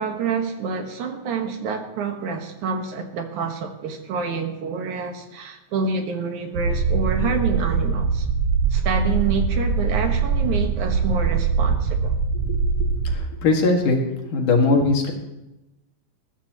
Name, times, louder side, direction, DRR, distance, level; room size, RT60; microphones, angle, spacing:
voice 1, 0.0-8.3 8.7-12.1, right 5 dB, 70° right, 4 dB, 2.7 m, -27 dB
sound 1, 6.5-13.2, right 5 dB, 85° right, 1.2 m, -22 dB
voice 2, 13.1-14.0 14.3-15.1, left 3 dB, 70° left, 2 dB, 3.4 m, -19 dB
20.5 x 14.0 x 3.0 m, 0.94 s
omnidirectional pair, 3.8 m